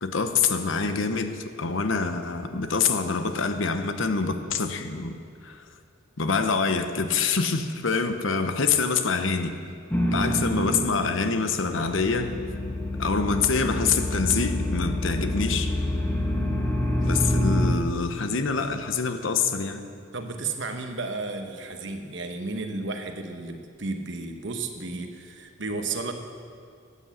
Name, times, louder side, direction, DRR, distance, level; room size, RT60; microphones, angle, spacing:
voice 1, 0.0-5.2 5.4-5.6 6.2-9.5 10.1-12.4 13.0-15.7 17.0-19.8, left 5 dB, 75° left, 8 dB, 0.9 m, -26 dB
sound 1, 9.9-11.3 11.6-17.7, left 1 dB, 10° left, 1.1 m, -27 dB
voice 2, 20.1-26.1, right 3 dB, 60° right, 5 dB, 1.1 m, -33 dB
12.5 x 8.4 x 7.2 m, 2.3 s
head